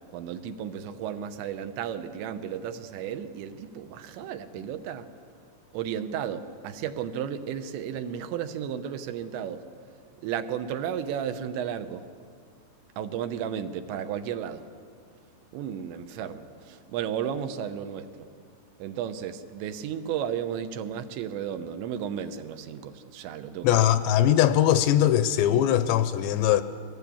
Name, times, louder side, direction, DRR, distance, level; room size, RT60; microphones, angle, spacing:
voice 1, 0.1-5.1 5.7-9.7 10.2-12.0 13.0-14.7 15.5-18.3 18.8-23.8, right 8 dB, 85° right, 3.2 m, -33 dB
voice 2, 23.6-26.6, left 11 dB, 80° left, 2.9 m, -21 dB
23.5 x 18.5 x 8.5 m
omnidirectional pair, 5.1 m